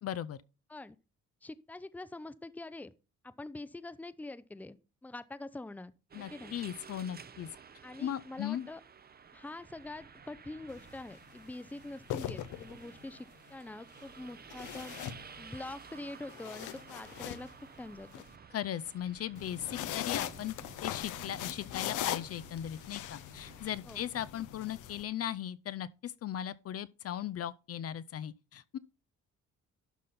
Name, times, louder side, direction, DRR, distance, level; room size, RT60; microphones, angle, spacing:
voice 1, 0.0-0.4 6.1-7.5 8.0-8.7 18.5-20.5 20.8-28.8, left 10 dB, 50° left, 0.5 m, -38 dB
voice 2, 1.4-2.9 3.2-4.8 5.0-5.9 6.3-6.5 7.8-8.8 9.3-15.0 15.4-17.5 17.8-18.2 23.9-24.1, left 2 dB, 5° left, 0.6 m, -45 dB
sound 1, 6.1-23.8, right 6 dB, 30° right, 0.8 m, -53 dB
sound 2, 10.7-11.0 11.9-13.0 14.5-15.7 16.1-18.2 19.4-25.0, left 12 dB, 85° left, 0.8 m, -40 dB
12.0 x 4.1 x 5.6 m
cardioid pair, 90°, 30 cm